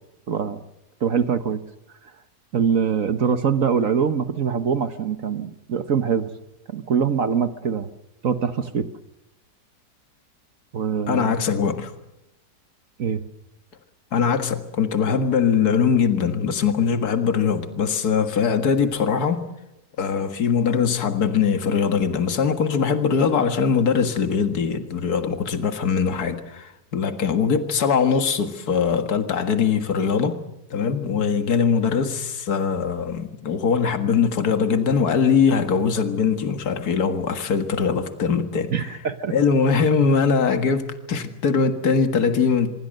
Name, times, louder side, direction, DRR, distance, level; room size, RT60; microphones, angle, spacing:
voice 1, 0.3-0.6 1.0-1.6 2.5-6.3 6.7-7.9 8.2-8.9 10.7-11.4 13.0-13.2 38.7-39.3, right 7 dB, 55° right, 1.4 m, -23 dB
voice 2, 11.1-11.9 14.1-19.4 20.0-30.4 30.7-38.7 39.3-42.7, left 6 dB, 65° left, 2.2 m, -21 dB
25.5 x 22.5 x 6.6 m
omnidirectional pair, 1.8 m